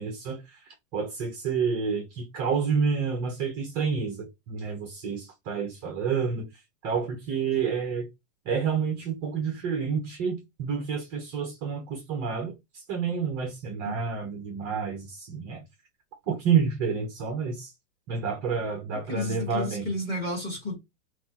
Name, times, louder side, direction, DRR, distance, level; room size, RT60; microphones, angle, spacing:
voice 1, 0.0-8.1 8.4-15.6 16.3-17.7 18.1-19.9, right 6 dB, 20° right, 0.5 m, -29 dB
voice 2, 18.9-20.8, left 2 dB, 15° left, 1.7 m, -32 dB
5.8 x 2.4 x 2.8 m
supercardioid pair, 170°, 39 cm